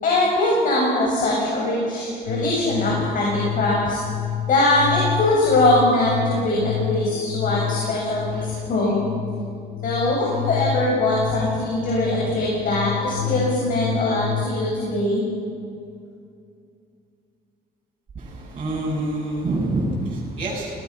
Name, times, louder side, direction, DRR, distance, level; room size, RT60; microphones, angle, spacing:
voice 1, 0.0-4.0 4.5-9.1 9.8-15.2, left 2 dB, 55° left, -4 dB, 7.3 m, -21 dB
sound 1, 2.3-14.5, left 10 dB, 85° left, 2.0 m, -29 dB
voice 2, 18.1-20.8, right 2 dB, 35° right, -7 dB, 7.6 m, -27 dB
28.5 x 20.0 x 6.1 m, 2.4 s
cardioid pair, 110°, 17 cm